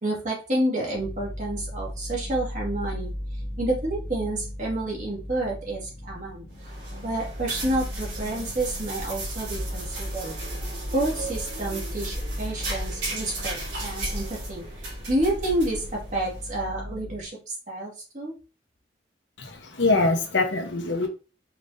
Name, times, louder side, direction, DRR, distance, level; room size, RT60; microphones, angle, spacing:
voice 1, 0.0-3.1 3.6-6.5 7.0-10.3 10.9-14.7 15.1-18.4, right 1 dB, 45° right, -3 dB, 1.9 m, -29 dB
sound 1, 1.0-17.2, equal, 65° left, 1.4 m, -38 dB
sound 2, 6.5-16.5, right 1 dB, 90° right, 2.3 m, -34 dB
voice 2, 19.4-21.1, left 3 dB, 85° left, 3 dB, 1.1 m, -24 dB
5.0 x 3.4 x 2.7 m, 0.32 s
head